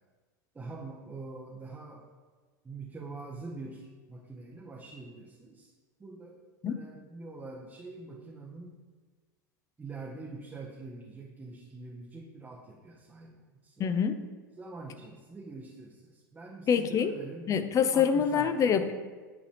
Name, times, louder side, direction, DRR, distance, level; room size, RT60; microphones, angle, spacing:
voice 1, 0.5-2.0 2.6-5.7 6.0-8.8 9.8-13.4 13.6-13.9 14.6-17.5 17.9-18.7, right 3 dB, 15° right, -1 dB, 0.8 m, -44 dB
voice 2, 13.8-14.2 16.7-17.1 17.5-18.9, left 7 dB, 30° left, 10 dB, 0.5 m, -25 dB
9.5 x 4.1 x 2.9 m, 1.4 s
hypercardioid pair, 85°, 11 cm